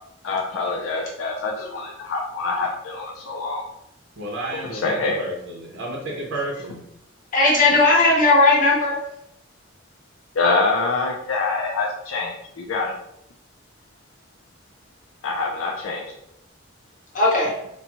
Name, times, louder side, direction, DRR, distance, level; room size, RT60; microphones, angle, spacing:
voice 1, 0.2-3.6 4.5-5.2 10.4-12.9 15.2-16.1, left 3 dB, 80° left, 0 dB, 0.5 m, -25 dB
voice 2, 4.2-6.8, right 1 dB, 80° right, -3 dB, 0.8 m, -31 dB
voice 3, 7.3-9.0 17.1-17.5, left 2 dB, 40° left, -5 dB, 1.1 m, -16 dB
4.0 x 2.2 x 2.8 m, 0.78 s
head